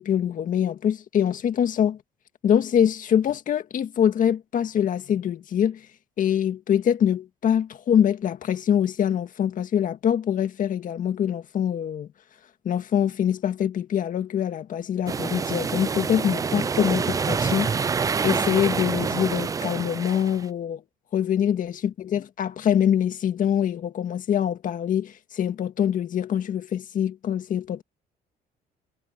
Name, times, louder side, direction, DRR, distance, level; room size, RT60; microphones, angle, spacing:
voice 1, 0.0-2.0 2.4-5.8 6.2-12.1 12.7-17.7 18.2-20.8 21.1-27.8, left 9 dB, 50° left, 1.9 m, -24 dB
sound 1, 15.1-20.4, right 5 dB, 20° right, 0.3 m, -27 dB
cardioid pair, 110°, 17 cm